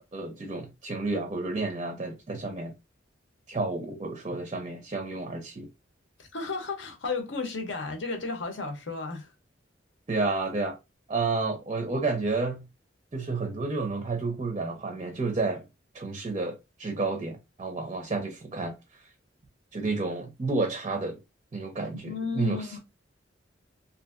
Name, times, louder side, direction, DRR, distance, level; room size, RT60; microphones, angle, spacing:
voice 1, 0.1-2.7 3.5-5.7 10.1-10.8 11.1-12.7 13.1-15.6 15.9-18.8 19.7-21.2 21.5-22.8, right 3 dB, 30° right, 0.4 m, -31 dB
voice 2, 6.2-9.3 22.0-22.8, left 4 dB, 70° left, 0.7 m, -33 dB
2.7 x 2.5 x 2.4 m
head